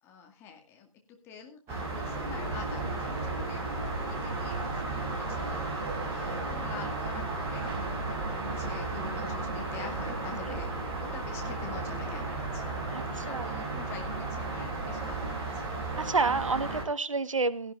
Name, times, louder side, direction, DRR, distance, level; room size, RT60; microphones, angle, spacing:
voice 1, 0.0-3.6 4.1-7.7 8.1-12.7 13.2-15.7, left 6 dB, 15° left, 2 dB, 2.2 m, -46 dB
sound 1, 1.7-16.8, right 3 dB, 15° right, 4.5 m, -34 dB
voice 2, 12.9-13.6 16.0-17.7, right 4 dB, 65° right, 15 dB, 1.3 m, -30 dB
17.5 x 14.5 x 2.5 m, 0.29 s
figure-of-eight pair, 145°, 18 cm